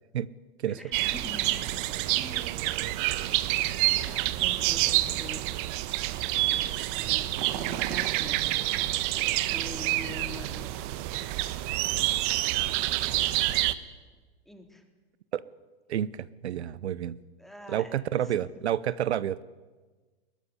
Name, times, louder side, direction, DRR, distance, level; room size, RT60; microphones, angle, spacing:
voice 1, 0.6-2.5 3.8-5.4 6.1-10.7 14.5-14.9 17.4-18.4, left 1 dB, ahead, 4 dB, 3.5 m, -45 dB
sound 1, 0.9-13.7, right 16 dB, 50° right, 1.3 m, -28 dB
voice 2, 15.9-17.2 17.7-19.4, right 11 dB, 85° right, 18 dB, 0.8 m, -29 dB
21.5 x 19.5 x 9.8 m, 1.3 s
hypercardioid pair, 115°, 32 cm